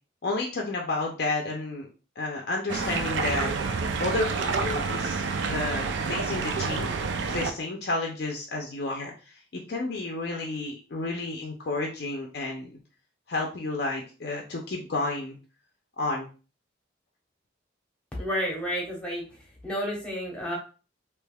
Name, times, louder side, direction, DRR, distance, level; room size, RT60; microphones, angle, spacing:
voice 1, 0.2-1.9 2.2-3.5 4.0-6.9 7.2-12.8 13.3-15.4 16.0-16.3, left 2 dB, 55° left, 0 dB, 0.5 m, -31 dB
sound 1, 2.7-7.5, right 4 dB, 70° right, 0.4 m, -28 dB
voice 2, 18.2-19.3 19.6-20.6, equal, 5° left, -3 dB, 1.0 m, -30 dB
3.4 x 3.0 x 2.2 m, 0.34 s
head